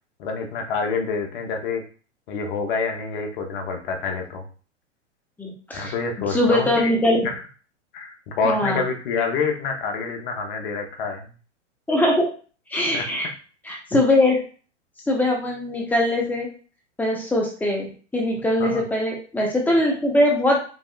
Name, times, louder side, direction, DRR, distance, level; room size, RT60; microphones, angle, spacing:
voice 1, 0.2-1.8 2.3-4.4 5.7-6.9 7.2-7.3 7.9-11.3 12.9-13.1 18.6-18.8, left 4 dB, 45° left, 4 dB, 0.8 m, -27 dB
voice 2, 5.4-5.9 6.3-7.2 8.4-8.8 11.9-12.3 12.7-13.3 13.6-14.4 15.1-16.5 17.0-17.9 18.1-20.6, left 1 dB, 5° left, -1 dB, 0.7 m, -21 dB
3.0 x 2.6 x 2.4 m, 0.39 s
hypercardioid pair, 110°, 36 cm